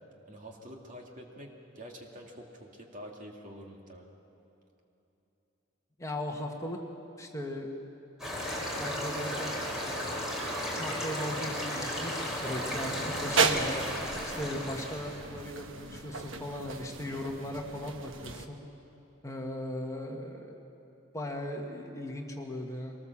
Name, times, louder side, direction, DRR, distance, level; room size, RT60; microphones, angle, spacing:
voice 1, 0.3-4.1, equal, 40° right, 0 dB, 2.4 m, -47 dB
voice 2, 6.0-6.8 7.2-7.7 8.8-9.5 10.7-13.8 14.2-18.6 19.2-20.6 21.1-23.0, left 1 dB, 15° left, 1 dB, 1.6 m, -38 dB
sound 1, 8.2-15.2, equal, ahead, 4.9 m, -34 dB
sound 2, 12.5-18.5, right 4 dB, 75° right, 1.2 m, -34 dB
23.5 x 19.5 x 7.3 m, 3.0 s
head